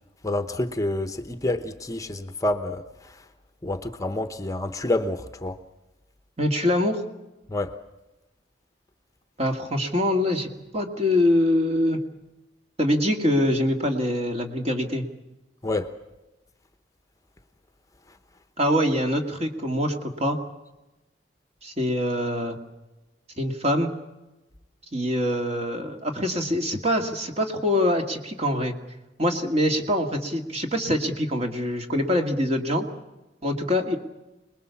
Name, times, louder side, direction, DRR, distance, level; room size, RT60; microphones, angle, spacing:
voice 1, 0.2-2.8 3.6-5.6 7.5-7.7 15.6-15.9, left 2 dB, 20° left, 8 dB, 0.9 m, -28 dB
voice 2, 6.4-7.0 9.4-12.0 12.8-15.0 18.6-20.4 21.6-22.6 23.4-23.9 24.9-28.8 29.2-32.9 33.4-34.0, left 1 dB, 35° right, 4 dB, 2.3 m, -24 dB
26.5 x 20.5 x 7.2 m, 1.0 s
head